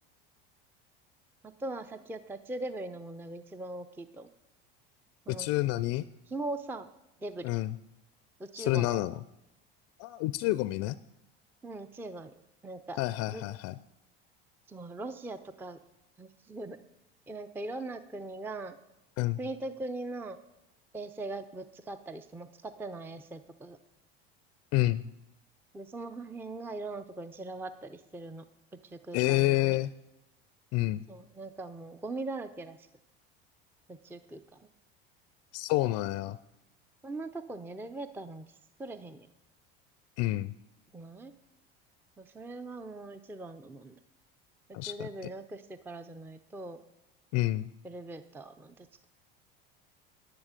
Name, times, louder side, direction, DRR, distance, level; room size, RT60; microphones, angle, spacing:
voice 1, 1.4-4.3 5.3-5.5 6.3-6.9 7.2-7.5 8.4-8.9 11.6-12.3 12.6-13.0 13.3-13.4 14.7-15.8 16.2-16.8 17.3-18.8 19.4-20.4 20.9-23.8 25.7-28.5 28.7-29.8 31.1-32.9 33.9-34.7 37.0-39.3 40.9-41.3 42.2-43.9 44.7-46.8 47.8-49.1, right 2 dB, 5° right, 11 dB, 0.5 m, -41 dB
voice 2, 5.3-6.0 7.4-7.7 8.6-9.1 10.0-10.9 13.0-13.7 19.2-19.4 24.7-25.0 29.1-29.9 30.7-31.0 35.5-36.4 40.2-40.5 44.7-45.1 47.3-47.7, left 17 dB, 55° left, 17 dB, 0.4 m, -28 dB
10.0 x 9.7 x 5.1 m, 0.88 s
hypercardioid pair, 90°, 30 cm